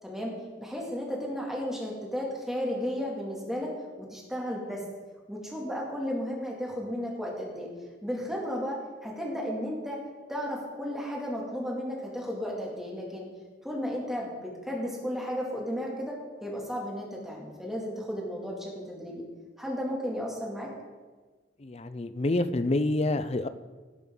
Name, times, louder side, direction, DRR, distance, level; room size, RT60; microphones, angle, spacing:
voice 1, 0.0-3.7 4.0-4.8 5.3-7.7 8.0-8.8 9.0-10.0 10.3-13.3 13.6-16.1 16.4-19.2 19.6-20.7, equal, ahead, -3 dB, 2.4 m, -34 dB
voice 2, 21.6-23.5, left 2 dB, 35° left, 12 dB, 0.5 m, -27 dB
18.0 x 7.5 x 3.9 m, 1.3 s
head